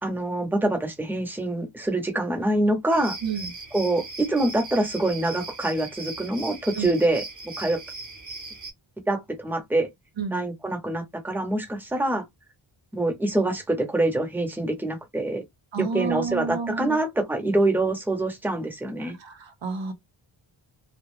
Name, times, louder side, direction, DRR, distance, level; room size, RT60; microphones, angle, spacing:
voice 1, 0.0-3.2 3.7-7.2 7.6-7.8 9.1-9.9 10.3-12.2 12.9-15.4 15.8-19.2, right 2 dB, 5° right, 0.8 m, -25 dB
sound 1, 2.9-8.7, right 3 dB, 40° right, 0.9 m, -39 dB
voice 2, 15.7-17.0 19.0-19.9, right 5 dB, 65° right, 0.8 m, -30 dB
2.3 x 2.1 x 3.2 m
wide cardioid pair, 120°, 48 cm